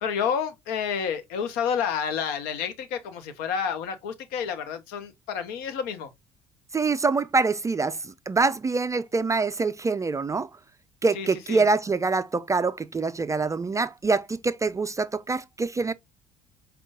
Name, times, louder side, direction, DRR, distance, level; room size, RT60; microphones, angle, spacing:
voice 1, 0.0-6.1 11.1-11.6, left 7 dB, 65° left, 0.9 m, -29 dB
voice 2, 6.7-8.0 8.3-10.5 11.0-15.9, right 4 dB, 20° right, 0.3 m, -25 dB
5.2 x 2.3 x 3.6 m
hypercardioid pair, 60°, 17 cm